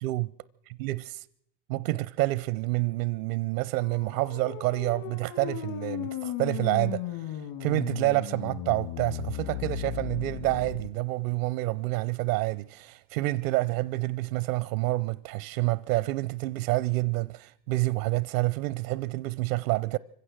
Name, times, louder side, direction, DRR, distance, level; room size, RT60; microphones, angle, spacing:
voice 1, 0.0-0.3 0.8-1.2 1.7-20.0, right 20 dB, 75° right, 0.8 m, -28 dB
sound 1, 3.8-10.9, left 13 dB, 70° left, 3.6 m, -36 dB
25.0 x 16.0 x 7.5 m
hypercardioid pair, 85°, 43 cm